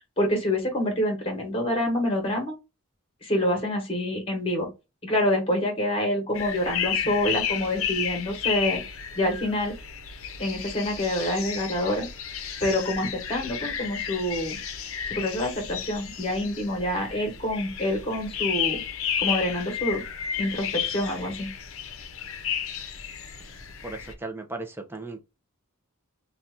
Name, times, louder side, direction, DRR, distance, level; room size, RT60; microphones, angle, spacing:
voice 1, 0.2-2.5 3.2-4.7 5.0-8.8 9.2-9.7 10.4-12.1 12.6-14.6 15.1-18.8 19.2-20.0 20.4-21.5, left 1 dB, 25° left, 1.2 m, -27 dB
sound 1, 6.3-24.1, left 8 dB, 70° left, 0.6 m, -32 dB
voice 2, 23.8-25.2, right 2 dB, 10° right, 0.5 m, -36 dB
2.8 x 2.3 x 3.6 m
head